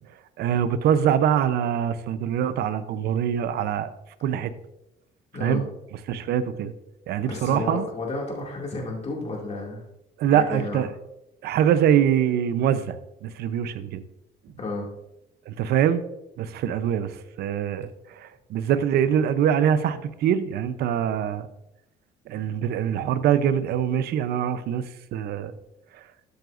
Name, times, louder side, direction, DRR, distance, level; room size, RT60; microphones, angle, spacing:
voice 1, 0.4-3.9 4.2-4.5 5.4-5.7 6.1-6.7 7.1-7.9 10.2-10.9 11.4-14.0 15.5-16.1 16.4-21.5 22.3-25.5 25.9-26.1, right 9 dB, 70° right, 13 dB, 0.7 m, -24 dB
voice 2, 7.2-9.8 10.3-10.8 14.6-14.9, left 3 dB, 40° left, -2 dB, 2.4 m, -31 dB
13.0 x 7.8 x 2.6 m, 0.88 s
cardioid pair, 110°, 17 cm